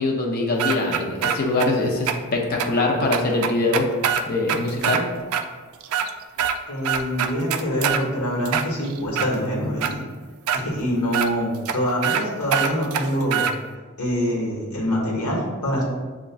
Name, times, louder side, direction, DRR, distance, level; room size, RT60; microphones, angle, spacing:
voice 1, 0.0-3.9 4.3-5.0, left 2 dB, 45° left, 0 dB, 0.5 m, -23 dB
sound 1, 0.6-1.7 2.1-2.2 2.6-2.7 3.1-5.0 5.3-5.4 5.8-6.6 6.8-8.0 8.5-9.3 9.8-9.9 10.5-10.6 11.1-11.3 11.7-11.8 12.0-12.2 12.5-13.5, right 8 dB, 70° right, 0.3 m, -23 dB
voice 2, 6.7-10.0 10.5-13.4 14.0-15.8, equal, 85° left, -3 dB, 1.2 m, -25 dB
6.8 x 2.4 x 2.3 m, 1.4 s
head